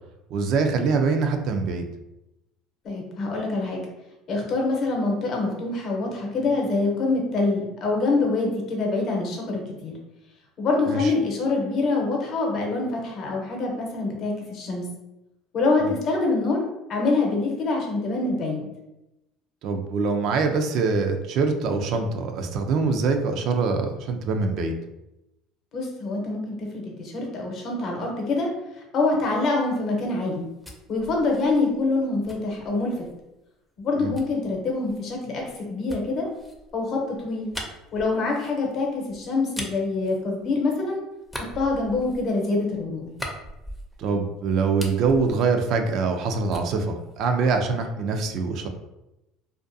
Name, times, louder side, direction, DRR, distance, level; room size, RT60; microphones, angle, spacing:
voice 1, 0.3-1.8 10.9-11.1 15.8-15.9 19.6-24.7 34.0-34.1 44.0-48.7, right 4 dB, 60° right, 5 dB, 0.3 m, -24 dB
voice 2, 2.8-3.8 4.3-9.9 10.6-14.8 15.5-16.6 16.9-18.7 25.7-28.5 28.9-30.5 30.9-33.1 33.8-36.3 36.7-37.5 37.9-41.0 41.4-43.1, left 3 dB, 50° left, 0 dB, 0.8 m, -25 dB
sound 1, 30.3-33.3 34.1-40.8 41.2-44.2 44.5-46.2 46.5-47.8, equal, 5° left, 0.5 m, -41 dB
2.4 x 2.2 x 2.5 m, 0.94 s
supercardioid pair, 100°, 0 cm